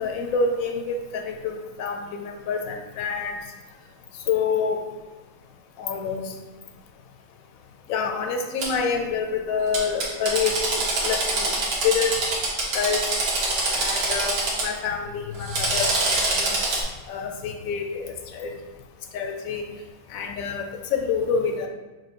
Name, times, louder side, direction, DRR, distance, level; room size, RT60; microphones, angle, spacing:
voice 1, 0.0-3.4 4.3-4.8 5.8-6.3 7.9-11.5 11.8-12.3 12.7-13.0 13.7-16.0 16.4-16.5 17.1-18.5 19.1-19.6 20.1-20.6 20.9-21.7, left 5 dB, 70° left, 4 dB, 0.9 m, -27 dB
Drill, 8.6-8.7 9.7-14.7 15.3-16.8, right 2 dB, 75° right, 1.4 m, -25 dB
4.6 x 2.2 x 4.3 m, 1.2 s
omnidirectional pair, 1.6 m